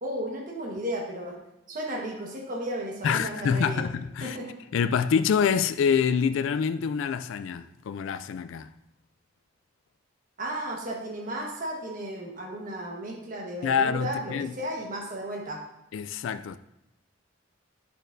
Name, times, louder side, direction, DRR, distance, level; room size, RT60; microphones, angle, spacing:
voice 1, 0.0-1.4 1.7-3.9 4.2-4.6 10.4-15.6, right 1 dB, 40° right, 1.3 m, -34 dB
voice 2, 3.0-4.4 4.7-8.7 13.6-14.5 15.9-16.6, left 6 dB, 75° left, 0.3 m, -26 dB
9.9 x 6.5 x 2.6 m
head